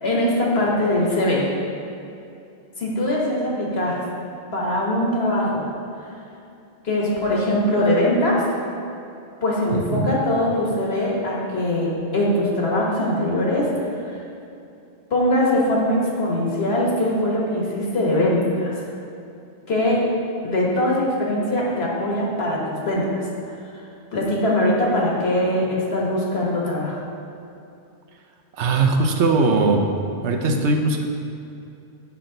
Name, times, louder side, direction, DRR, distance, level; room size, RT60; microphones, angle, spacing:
voice 1, 0.0-1.5 2.8-4.0 4.5-5.6 6.8-8.4 9.4-13.7 14.0-14.2 15.1-18.7 19.7-20.0 20.4-23.3 24.1-27.0, left 1 dB, 60° left, -3 dB, 1.5 m, -21 dB
voice 2, 9.7-10.1 28.6-29.9 30.2-31.0, right 3 dB, 75° right, 3 dB, 1.0 m, -20 dB
8.2 x 6.0 x 3.8 m, 2.6 s
omnidirectional pair, 1.2 m